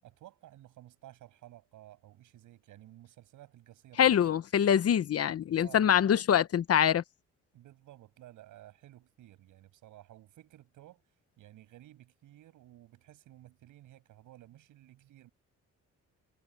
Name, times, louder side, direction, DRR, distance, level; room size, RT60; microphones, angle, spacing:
voice 1, 0.0-4.2 5.6-6.0 7.5-11.0 11.4-15.3, right 14 dB, 85° right, 8.0 m, -54 dB
voice 2, 4.0-7.0, left 9 dB, 50° left, 1.0 m, -24 dB
cardioid pair, 90°, 30 cm